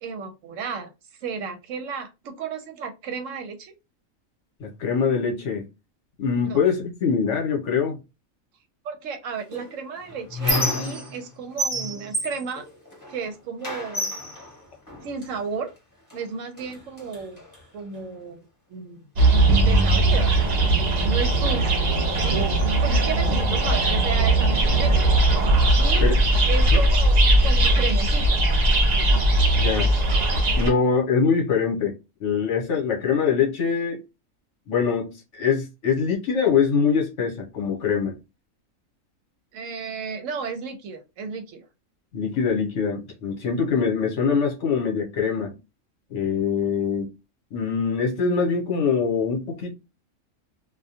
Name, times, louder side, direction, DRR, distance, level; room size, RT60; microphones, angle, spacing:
voice 1, 0.0-0.9 1.2-3.7 6.5-6.6 8.8-12.6 13.1-14.1 15.0-15.7 16.1-17.4 17.7-18.4 18.7-19.1 19.6-21.8 22.2-22.4 22.6-25.1 25.5-26.1 26.5-28.4 39.5-41.7, right 5 dB, 75° right, 0.9 m, -33 dB
voice 2, 4.6-5.7 6.2-8.0 26.0-26.1 26.7-26.8 29.5-29.9 30.6-31.9 32.2-34.0 34.7-38.2 42.1-45.6 46.1-47.1 47.5-49.8, left 6 dB, 65° left, 1.1 m, -23 dB
Squeak, 9.5-11.3 11.6-13.2 13.6-15.3 16.1-16.2 16.6-17.6, equal, 15° left, 0.8 m, -29 dB
sound 1, 19.2-30.7, right 1 dB, 55° right, 0.4 m, -19 dB
2.4 x 2.2 x 2.7 m
omnidirectional pair, 1.4 m